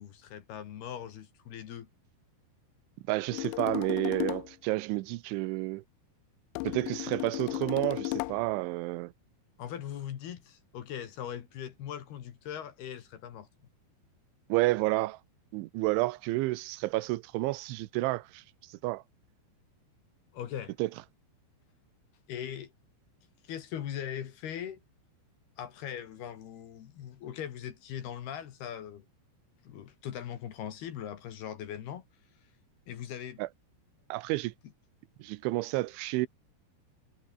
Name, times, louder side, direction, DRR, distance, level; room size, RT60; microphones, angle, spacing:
voice 1, 0.0-1.9 9.6-13.5 20.3-20.7 22.3-22.7 23.4-24.8 25.6-29.1 29.6-32.0 32.9-33.4, left 10 dB, 60° left, 3.6 m, -40 dB
voice 2, 3.1-5.8 6.6-9.1 14.5-15.2 15.5-19.0 20.8-20.9 33.4-33.5 34.1-34.5 35.2-36.3, right 20 dB, 80° right, 3.1 m, -30 dB
sound 1, 3.3-4.5 6.6-8.5, left 23 dB, 85° left, 2.5 m, -34 dB
omnidirectional pair, 5.6 m